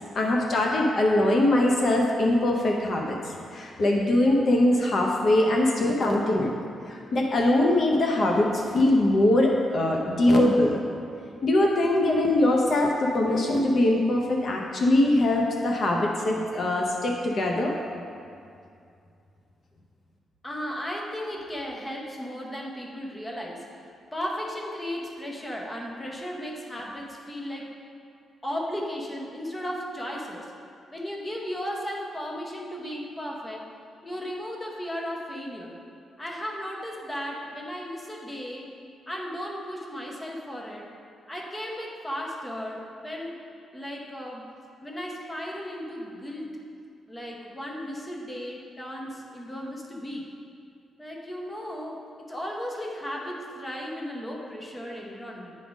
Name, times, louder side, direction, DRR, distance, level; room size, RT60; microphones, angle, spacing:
voice 1, 0.1-6.5 6.9-10.8 11.4-17.8, left 1 dB, 45° left, 0 dB, 0.6 m, -22 dB
voice 2, 20.4-23.7 24.1-27.7 28.4-30.5 30.9-33.7 34.0-35.8 36.2-38.7 39.1-40.9 41.3-43.4 43.7-44.5 44.8-46.6 47.1-50.3 51.0-55.6, equal, 10° left, -1 dB, 0.8 m, -35 dB
9.1 x 3.6 x 5.0 m, 2.4 s
wide cardioid pair, 155°, 0 cm